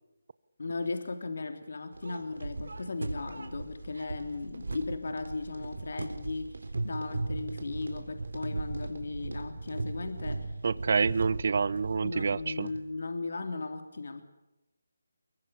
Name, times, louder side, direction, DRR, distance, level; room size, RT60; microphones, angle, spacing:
voice 1, 0.6-10.4 12.0-14.2, left 3 dB, 65° left, 8 dB, 3.2 m, -36 dB
sound 1, 1.9-12.9, right 3 dB, 75° right, 3.9 m, -38 dB
voice 2, 10.6-12.7, right 5 dB, 55° right, 19 dB, 1.0 m, -28 dB
24.5 x 23.0 x 7.0 m, 0.94 s
figure-of-eight pair, 160°, 0 cm